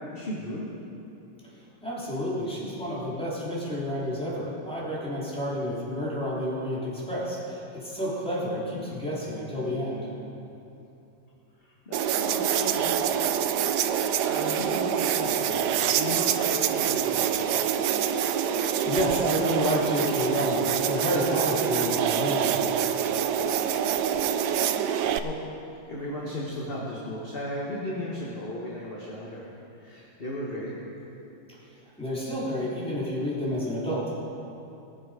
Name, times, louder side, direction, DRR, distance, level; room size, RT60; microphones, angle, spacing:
voice 1, 0.1-0.6 11.8-13.4 14.2-17.6 24.8-25.5 25.9-29.5 29.8-30.8, left 1 dB, 30° left, -5 dB, 1.5 m, -36 dB
voice 2, 1.8-10.1 15.2-15.5 18.2-18.3 18.8-22.7 32.0-34.2, equal, ahead, -8 dB, 3.3 m, -30 dB
sound 1, 11.9-25.2, right 9 dB, 75° right, 0.9 m, -26 dB
21.0 x 7.5 x 5.1 m, 2.8 s
omnidirectional pair, 2.4 m